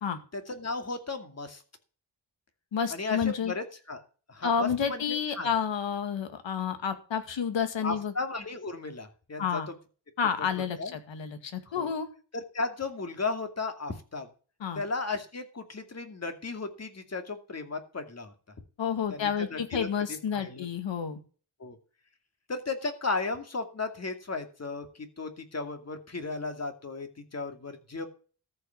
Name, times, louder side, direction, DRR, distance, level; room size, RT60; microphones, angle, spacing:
voice 1, 0.3-1.6 2.9-4.0 4.3-5.0 5.4-5.5 7.8-9.6 10.5-11.0 11.7-11.9 12.3-14.3 14.7-18.3 19.1-20.7 21.6-21.8 22.5-24.9 25.2-28.1, left 3 dB, 35° left, 6 dB, 2.4 m, -35 dB
voice 2, 2.7-3.5 4.4-8.1 9.4-9.7 10.2-12.1 14.6-14.8 18.8-21.2, left 7 dB, 80° left, 8 dB, 2.2 m, -30 dB
14.0 x 5.7 x 7.1 m, 0.38 s
wide cardioid pair, 110°, 44 cm